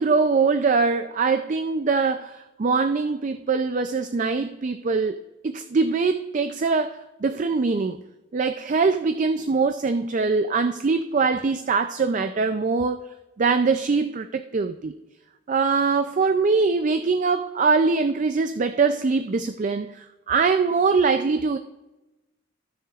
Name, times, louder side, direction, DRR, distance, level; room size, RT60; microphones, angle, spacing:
voice 1, 0.0-8.0 8.3-13.0 13.4-15.0 15.5-21.6, right 4 dB, 40° right, 9 dB, 0.4 m, -23 dB
15.5 x 6.8 x 2.4 m, 1.0 s
head